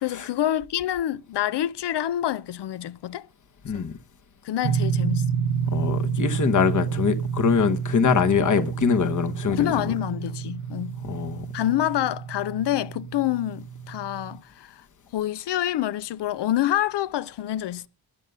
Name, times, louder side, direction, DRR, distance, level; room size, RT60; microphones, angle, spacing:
voice 1, 0.0-3.3 3.7-3.9 4.4-5.4 9.5-10.9 11.5-14.8 15.1-17.9, left 12 dB, 85° left, 0.6 m, -27 dB
sound 1, 4.6-14.4, right 7 dB, 85° right, 1.0 m, -29 dB
voice 2, 5.7-9.9 11.0-11.5, left 6 dB, 45° left, 1.1 m, -23 dB
20.5 x 6.8 x 5.4 m
wide cardioid pair, 95°, 40 cm